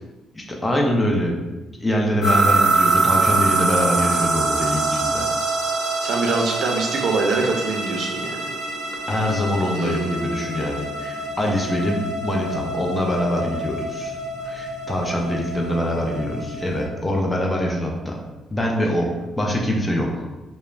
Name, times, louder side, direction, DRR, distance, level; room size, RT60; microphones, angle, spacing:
voice 1, 0.3-1.3 1.8-5.3 9.1-18.2 18.5-19.1 19.4-20.3, left 1 dB, 15° left, 0 dB, 0.4 m, -24 dB
sound 1, 2.2-16.9, right 3 dB, 55° left, 0.9 m, -25 dB
voice 2, 6.0-8.5 9.7-10.5, right 3 dB, 65° right, 1 dB, 0.4 m, -24 dB
2.3 x 2.0 x 3.1 m, 1.1 s
cardioid pair, 110°, 0 cm